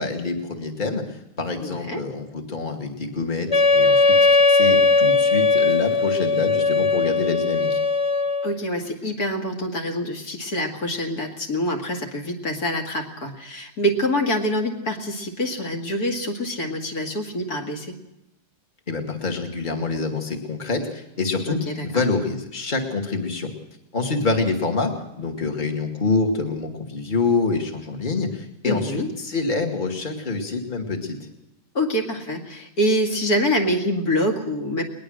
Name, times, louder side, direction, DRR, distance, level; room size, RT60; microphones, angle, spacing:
voice 1, 0.0-7.8 18.9-23.5 23.9-24.9 25.2-31.2, left 3 dB, 30° left, 3 dB, 2.4 m, -26 dB
voice 2, 1.6-2.0 8.4-17.9 21.5-22.0 28.6-29.1 31.7-34.8, equal, 65° left, 2 dB, 2.6 m, -25 dB
Wind instrument woodwind instrument, 3.5-8.6, left 3 dB, 45° left, 0.4 m, -18 dB
20.5 x 20.5 x 6.5 m, 0.88 s
omnidirectional pair, 1.7 m